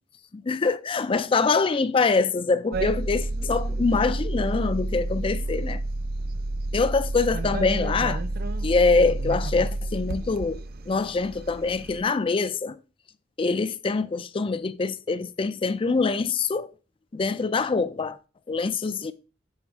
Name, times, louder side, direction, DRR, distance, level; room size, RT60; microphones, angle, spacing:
voice 1, 0.3-5.8 6.7-8.2 8.6-12.8 13.4-16.7 17.1-18.2 18.5-19.1, left 4 dB, 30° left, 0.4 m, -24 dB
sound 1, 2.7-12.0, right 2 dB, 55° right, 0.5 m, -30 dB
7.2 x 3.4 x 4.6 m
head